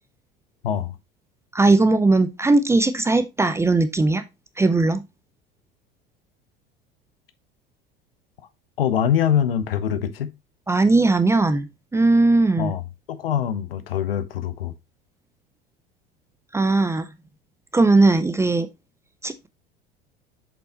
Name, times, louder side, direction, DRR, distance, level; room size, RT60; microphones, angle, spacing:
voice 1, 1.5-4.2 4.6-5.0 10.7-12.7 16.5-17.1 17.7-18.7 19.2-19.5, right 2 dB, 10° right, 0.6 m, -18 dB
voice 2, 8.8-10.3 12.6-12.8 13.1-14.7, left 9 dB, 70° left, 0.8 m, -23 dB
7.1 x 5.3 x 2.8 m
figure-of-eight pair, 70°, 30 cm